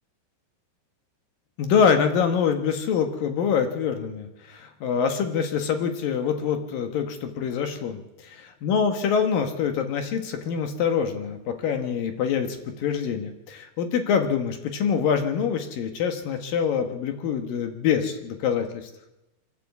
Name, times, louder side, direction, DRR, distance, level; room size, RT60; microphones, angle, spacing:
voice 1, 1.6-8.0 8.6-18.9, left 7 dB, 60° left, 6 dB, 2.7 m, -25 dB
24.5 x 13.0 x 8.2 m, 0.97 s
omnidirectional pair, 5.2 m